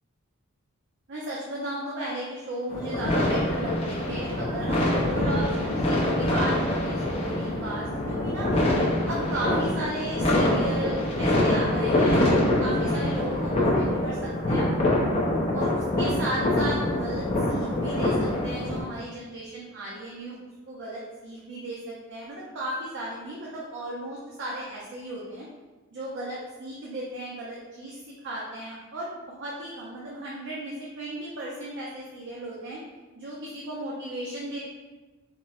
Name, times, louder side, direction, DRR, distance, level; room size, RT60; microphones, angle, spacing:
voice 1, 1.1-8.5 9.1-14.7 15.5-20.4 20.7-25.5 25.9-32.8 33.2-34.6, right 1 dB, 55° right, -5 dB, 0.5 m, -35 dB
sound 1, 2.7-18.8, left 1 dB, 25° left, 0.5 m, -25 dB
4.2 x 2.0 x 2.3 m, 1.2 s
head